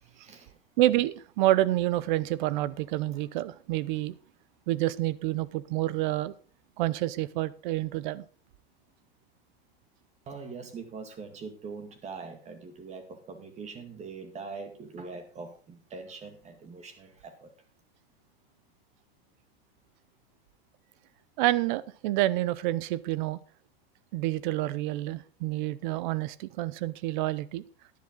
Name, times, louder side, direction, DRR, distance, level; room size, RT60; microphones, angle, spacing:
voice 1, 0.0-0.6 10.3-17.5, right 4 dB, 20° right, 7 dB, 2.0 m, -43 dB
voice 2, 0.8-4.1 4.7-6.3 6.8-8.2 21.4-23.4 24.1-27.6, right 15 dB, 50° right, 19 dB, 0.7 m, -28 dB
11.5 x 10.5 x 3.9 m, 0.41 s
supercardioid pair, 145°, 31 cm